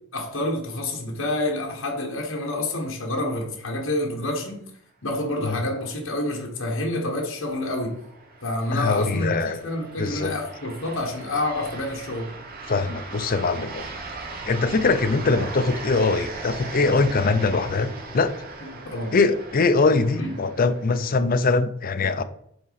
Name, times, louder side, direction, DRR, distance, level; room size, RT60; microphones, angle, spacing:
voice 1, 0.1-4.6 5.0-8.0 8.4-12.3 18.6-19.2 20.2-20.3, left 1 dB, 65° left, 0 dB, 1.4 m, -28 dB
sound 1, 6.3-21.2, right 3 dB, 45° right, 1.1 m, -39 dB
voice 2, 8.7-9.6 10.0-10.3 12.7-13.9 14.5-18.3 19.1-22.2, left 3 dB, 45° left, 10 dB, 0.5 m, -22 dB
7.8 x 4.1 x 4.1 m, 0.69 s
head